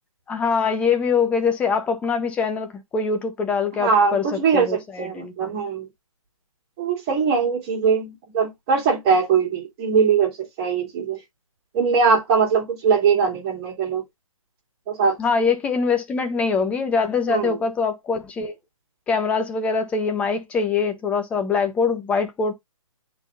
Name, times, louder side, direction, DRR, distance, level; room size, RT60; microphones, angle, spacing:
voice 1, 0.3-4.2 4.5-5.6 15.2-18.5 19.1-22.5, left 5 dB, 5° left, 0.6 m, -23 dB
voice 2, 3.8-5.8 6.8-10.3 10.6-11.2 11.7-14.0 14.9-15.2 17.3-17.6, right 5 dB, 25° right, 2.5 m, -21 dB
9.6 x 3.9 x 2.5 m
hypercardioid pair, 150°, 17 cm